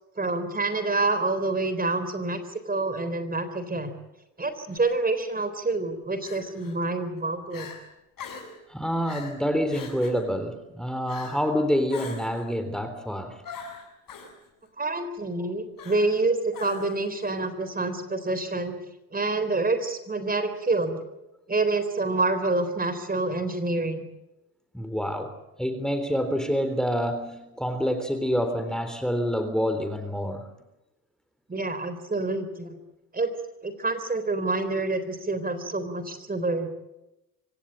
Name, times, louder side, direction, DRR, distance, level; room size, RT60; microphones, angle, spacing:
voice 1, 0.2-3.9 4.4-7.7 14.8-18.8 19.1-21.0 21.5-24.1 31.5-32.8 33.1-33.3 33.6-36.7, right 3 dB, 20° right, 10 dB, 3.8 m, -27 dB
Crying sobbing, 4.7-5.0 6.2-6.8 7.2-7.3 7.5-7.8 8.2-8.6 9.1-9.4 9.7-10.2 11.1-11.5 11.9-12.4 13.4-14.3 15.8-16.2 16.5-17.1, left 5 dB, 50° left, 7.3 m, -41 dB
voice 2, 8.7-13.4 24.7-25.3 25.6-30.5, equal, ahead, 8 dB, 3.5 m, -27 dB
25.5 x 17.5 x 8.9 m, 0.95 s
hypercardioid pair, 60°, 42 cm